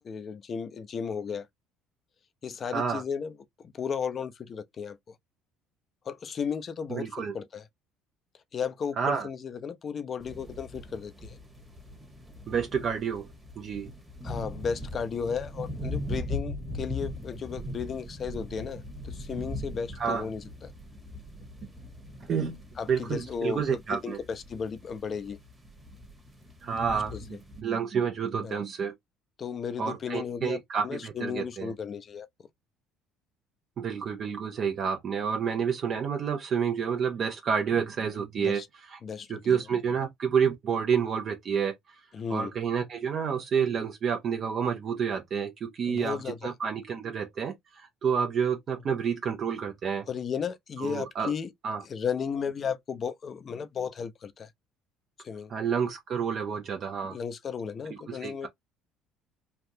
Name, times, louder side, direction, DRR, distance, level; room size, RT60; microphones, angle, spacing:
voice 1, 0.0-1.5 2.4-3.3 3.7-5.2 6.1-7.1 7.3-7.7 8.5-11.4 14.2-20.7 22.8-23.6 23.9-25.4 27.1-27.2 28.4-28.6 29.4-30.6 30.8-32.3 38.4-38.7 39.0-39.6 42.1-42.5 45.9-46.5 50.1-51.5 51.8-54.5 55.2-55.5 57.1-58.5, left 6 dB, 40° left, 0.5 m, -34 dB
voice 2, 6.9-7.3 9.0-9.3 12.5-13.3 13.6-13.9 20.0-20.3 22.3-22.6 22.9-24.2 26.6-28.9 29.8-31.7 33.8-38.6 38.9-39.0 39.3-41.7 42.3-50.1 50.8-51.3 51.6-51.8 55.5-57.2 57.9-58.5, right 7 dB, 45° right, 0.8 m, -29 dB
sound 1, 10.2-27.6, left 1 dB, 10° right, 1.2 m, -40 dB
3.4 x 2.4 x 2.7 m
supercardioid pair, 90°, 0 cm